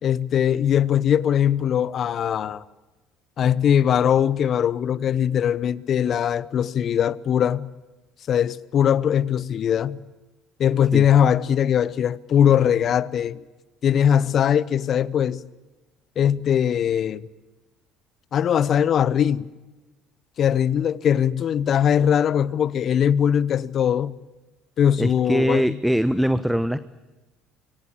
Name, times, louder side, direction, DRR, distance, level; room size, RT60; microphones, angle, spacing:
voice 1, 0.0-2.6 3.4-7.7 8.3-10.0 10.6-13.4 13.8-15.4 16.2-17.2 18.3-19.5 20.4-24.2 24.8-25.8, left 9 dB, 50° left, 0.9 m, -21 dB
voice 2, 25.0-26.8, equal, 5° right, 1.0 m, -22 dB
25.5 x 24.0 x 8.6 m
hypercardioid pair, 60°, 0 cm